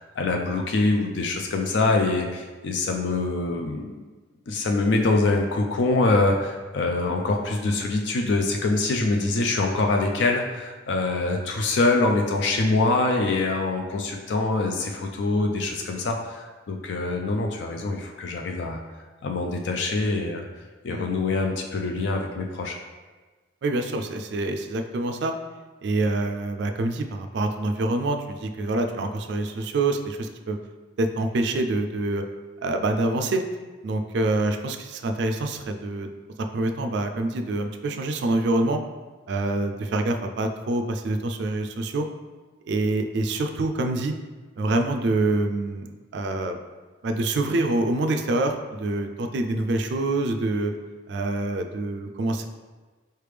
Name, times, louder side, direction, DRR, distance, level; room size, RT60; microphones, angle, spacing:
voice 1, 0.0-4.0 4.5-18.8 19.2-20.4 20.8-22.8, left 3 dB, 65° left, 2 dB, 0.4 m, -24 dB
voice 2, 23.6-25.3 25.8-30.6 31.0-32.2 32.6-33.4 33.8-36.1 36.5-38.8 39.3-42.1 42.6-44.1 44.6-46.6 47.0-50.7 51.1-52.4, right 2 dB, 65° right, 6 dB, 0.3 m, -26 dB
4.4 x 3.3 x 3.3 m, 1.3 s
head